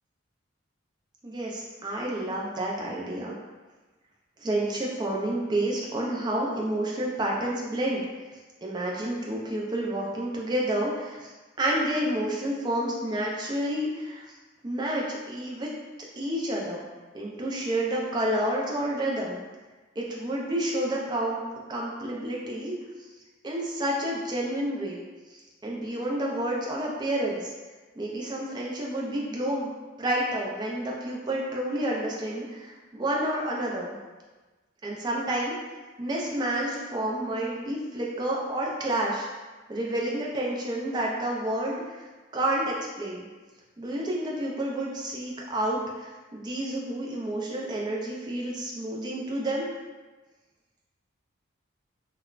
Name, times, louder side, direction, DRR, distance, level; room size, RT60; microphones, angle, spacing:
voice 1, 1.2-3.3 4.4-8.0 8.6-11.3 11.6-14.2 14.6-15.7 16.2-16.8 17.1-19.4 20.0-21.4 21.7-22.7 23.4-25.0 25.6-27.5 28.0-29.7 30.0-33.9 34.8-35.5 36.0-39.3 39.7-42.1 42.3-43.3 43.8-49.7, right 1 dB, 20° right, -3 dB, 0.3 m, -29 dB
3.1 x 2.0 x 2.3 m, 1.3 s
head